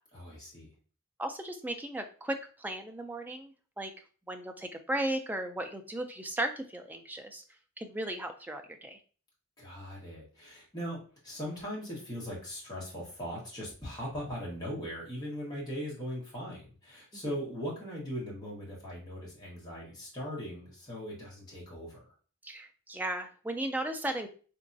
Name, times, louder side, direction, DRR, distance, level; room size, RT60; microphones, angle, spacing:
voice 1, 0.1-0.7 9.6-22.1, equal, 20° left, -5 dB, 1.4 m, -39 dB
voice 2, 1.2-3.9 4.3-7.4 7.8-9.0 17.1-17.2 22.4-24.3, right 1 dB, 10° right, 5 dB, 0.3 m, -36 dB
3.5 x 3.0 x 2.6 m, 0.39 s
head